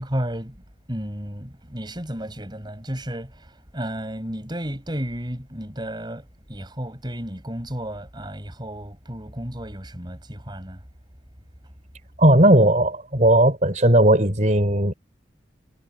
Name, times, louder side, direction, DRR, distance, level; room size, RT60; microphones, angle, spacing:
voice 1, 0.0-10.8, equal, 25° right, 6.8 m, -33 dB
voice 2, 12.2-14.9, right 1 dB, 40° right, 4.5 m, -17 dB
head